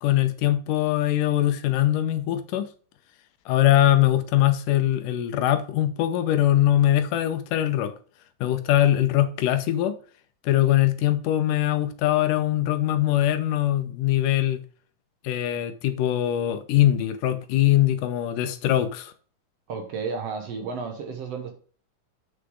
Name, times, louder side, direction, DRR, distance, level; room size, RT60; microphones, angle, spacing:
voice 1, 0.0-2.7 3.5-7.9 8.4-10.0 10.4-14.6 15.2-19.1, left 13 dB, 80° left, 2.4 m, -22 dB
voice 2, 19.7-21.5, right 5 dB, 60° right, 2.0 m, -32 dB
8.2 x 6.6 x 3.8 m
omnidirectional pair, 3.7 m